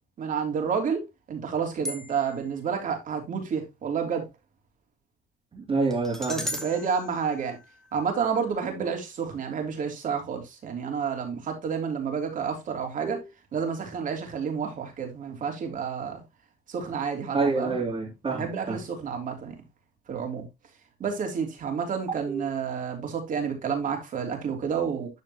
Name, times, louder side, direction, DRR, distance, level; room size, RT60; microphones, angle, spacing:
voice 1, 0.2-1.0 1.3-4.2 6.3-7.6 7.9-13.2 13.5-16.2 16.7-17.8 18.4-19.5 20.1-20.5 21.0-25.1, right 6 dB, 50° right, 3.1 m, -30 dB
sound 1, 1.8-2.5 5.9-8.2, left 1 dB, ahead, 2.0 m, -37 dB
voice 2, 5.5-6.5 13.0-13.2 17.3-18.8 22.3-22.4, right 3 dB, 35° right, 3.0 m, -28 dB
12.5 x 5.0 x 2.9 m
cardioid pair, 110°, 17 cm